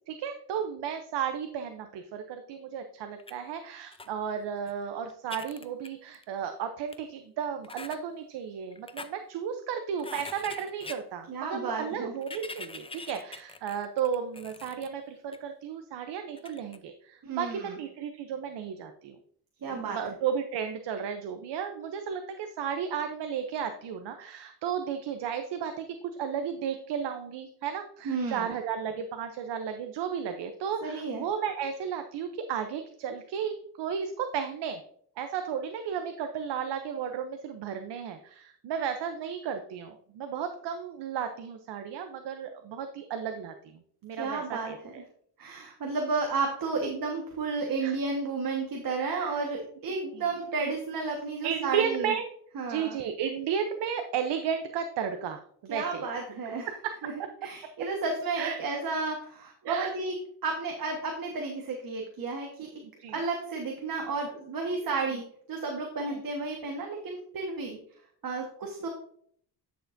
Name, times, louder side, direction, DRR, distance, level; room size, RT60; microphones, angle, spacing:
voice 1, 0.1-19.2 19.7-34.8 35.2-45.0 47.8-47.9 49.0-49.3 50.1-50.3 51.4-52.3 52.7-56.0 56.6-57.1 58.4-58.6 59.6-59.9 63.0-63.2 64.8-65.0 66.0-66.2 68.8-68.9, right 7 dB, 85° right, 7 dB, 0.8 m, -34 dB
sound 1, 3.2-3.3 3.9-4.1 4.7-4.8 5.1-6.4 6.9-7.0 7.6-8.0 8.7-9.1 10.0-11.0 12.2-14.9 15.3-15.4 16.4-16.8, left 3 dB, 15° left, 0.5 m, -43 dB
voice 2, 11.3-12.1 17.2-17.8 19.6-20.0 28.0-28.5 30.8-31.2 44.2-44.9 45.4-52.1 52.5-53.0 55.7-56.7 57.0-57.1 57.4-60.1 60.4-62.7 63.1-65.2 65.5-67.8 68.2-68.9, right 4 dB, 55° right, 1 dB, 1.5 m, -32 dB
10.0 x 6.6 x 2.6 m, 0.62 s
cardioid pair, 100°, 41 cm